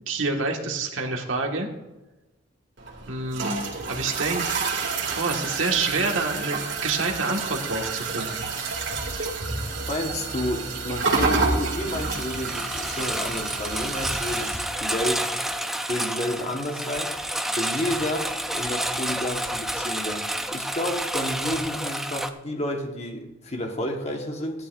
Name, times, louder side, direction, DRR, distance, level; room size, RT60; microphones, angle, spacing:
voice 1, 0.1-1.7 3.1-3.5 3.9-4.4 5.1-8.5, right 3 dB, 90° right, 1 dB, 1.7 m, -27 dB
sound 1, 2.8-14.5, right 4 dB, 70° right, 2.5 m, -29 dB
voice 2, 9.9-15.3 15.9-17.1 17.5-24.7, left 1 dB, 35° left, 3 dB, 1.3 m, -31 dB
Engine, 11.6-22.3, right 1 dB, ahead, 0.4 m, -30 dB
15.5 x 11.5 x 2.5 m, 1.1 s
head